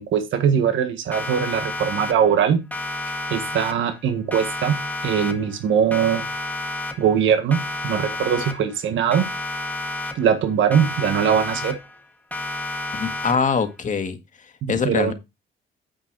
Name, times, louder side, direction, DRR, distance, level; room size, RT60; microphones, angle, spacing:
voice 1, 0.0-2.6 3.3-6.3 7.0-9.3 10.1-11.8 14.6-15.1, right 8 dB, 75° right, 1.6 m, -21 dB
Siren, 1.1-2.4 2.7-4.0 4.3-5.6 5.9-7.2 7.5-8.8 9.1-10.4 10.7-12.0 12.3-13.6, left 2 dB, 10° left, 1.7 m, -31 dB
voice 2, 12.9-14.2 14.7-15.1, left 5 dB, 40° left, 1.8 m, -23 dB
9.4 x 5.3 x 4.7 m
cardioid pair, 90°, 20 cm